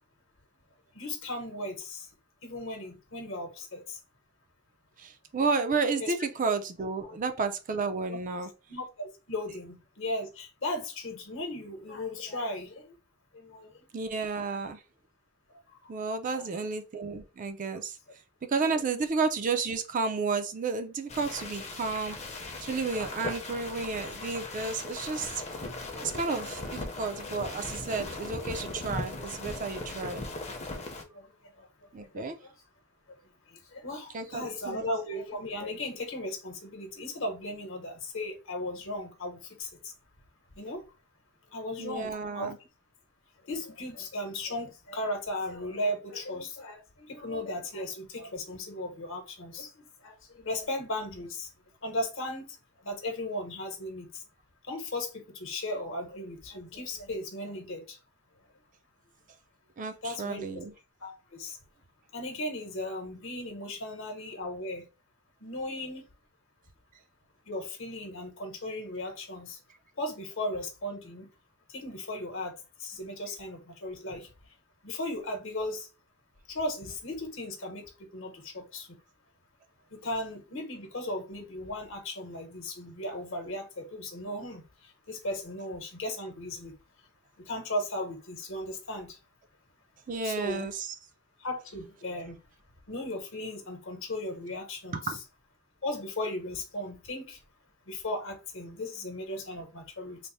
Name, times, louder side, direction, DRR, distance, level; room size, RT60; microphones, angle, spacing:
voice 1, 0.9-2.1 2.4-4.0 6.0-6.1 7.1-7.2 8.1-8.2 8.7-12.9 13.3-13.7 14.5-14.7 16.2-16.7 26.0-26.6 31.0-31.3 31.6-31.7 32.1-32.5 33.7-39.9 40.6-40.8 41.5-42.5 43.5-51.5 51.8-52.6 52.8-54.2 54.7-58.0 60.0-60.6 61.0-61.6 62.1-64.8 65.4-66.0 67.5-69.6 70.0-71.3 71.7-72.5 72.8-74.3 74.8-75.9 76.5-79.0 79.9-84.6 85.1-86.7 87.4-89.2 90.2-90.7 91.4-92.4 92.9-95.0 95.8-97.4 97.9-100.2, left 1 dB, 60° left, 1.0 m, -36 dB
voice 2, 5.0-8.5 13.9-14.8 15.9-18.0 18.5-22.2 22.6-25.4 26.0-30.3 31.9-32.4 34.1-34.9 41.8-42.6 59.8-60.7 90.1-90.9 94.9-95.2, right 4 dB, 40° right, 0.4 m, -32 dB
sound 1, 21.1-31.0, left 2 dB, 30° left, 0.7 m, -38 dB
3.3 x 2.0 x 4.1 m
head